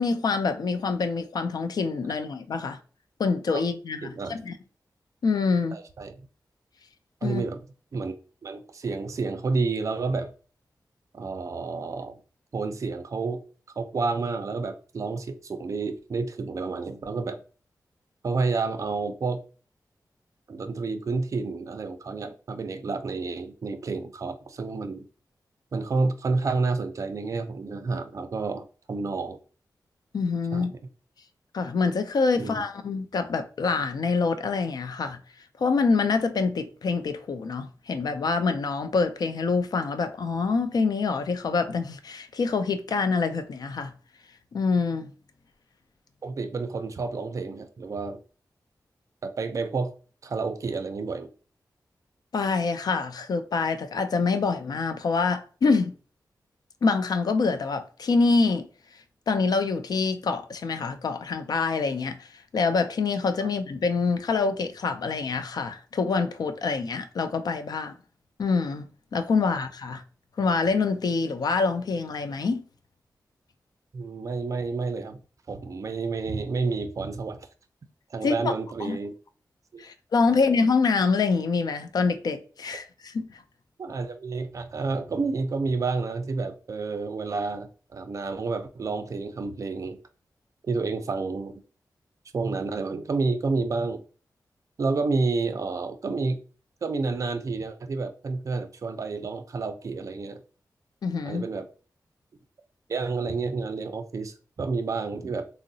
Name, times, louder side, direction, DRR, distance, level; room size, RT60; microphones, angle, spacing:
voice 1, 0.0-2.8 3.2-4.5 5.2-5.8 7.2-7.4 30.1-30.7 31.5-35.2 35.6-43.9 44.5-45.1 52.3-55.9 56.8-58.7 59.3-62.3 62.5-67.9 68.4-68.8 69.1-70.0 70.4-72.6 78.2-78.5 78.8-79.0 79.8-83.3 101.0-101.5, left 4 dB, 65° left, 0.4 m, -26 dB
voice 2, 4.0-4.4 5.7-6.3 7.2-7.6 7.9-8.1 8.4-10.3 11.1-12.2 12.5-13.4 13.8-17.4 18.2-19.4 20.5-25.0 25.7-29.4 30.5-30.8 32.3-32.6 46.2-48.2 49.2-49.9 50.2-51.3 63.4-63.5 73.9-75.2 75.5-77.5 78.1-79.1 79.7-79.8 80.3-80.5 83.8-90.0 90.7-91.5 92.3-94.0 94.8-96.4 96.8-100.4 101.2-101.7 102.9-105.5, right 4 dB, 45° right, 0.4 m, -30 dB
3.6 x 2.0 x 2.6 m
wide cardioid pair, 105°, 7 cm